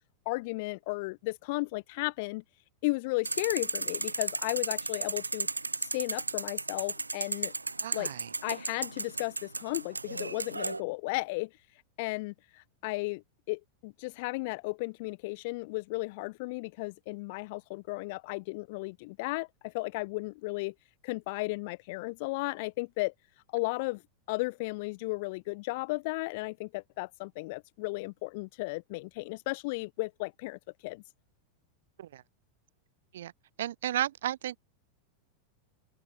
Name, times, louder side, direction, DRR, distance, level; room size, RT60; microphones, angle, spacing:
voice 1, 0.3-2.4 2.8-5.5 5.8-7.5 7.9-8.1 8.4-13.2 13.5-20.7 21.0-23.1 23.5-24.0 24.3-31.0, left 25 dB, 50° left, 0.8 m, -34 dB
sound 1, 3.3-10.8, right 3 dB, 80° right, 0.4 m, -34 dB
voice 2, 7.8-8.3 32.0-32.2 33.1-33.3 33.6-34.6, right 12 dB, 60° right, 2.2 m, -33 dB
open air
figure-of-eight pair, 90°, 0 cm